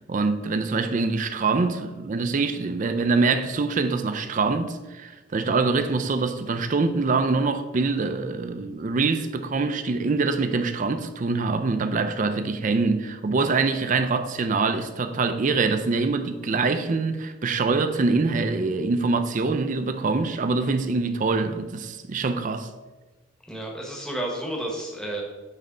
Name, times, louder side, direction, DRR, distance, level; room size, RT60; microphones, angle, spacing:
voice 1, 0.1-22.7, right 4 dB, 40° right, 0.4 m, -24 dB
voice 2, 23.5-25.2, right 1 dB, 5° left, 1.0 m, -31 dB
8.9 x 3.3 x 3.8 m
head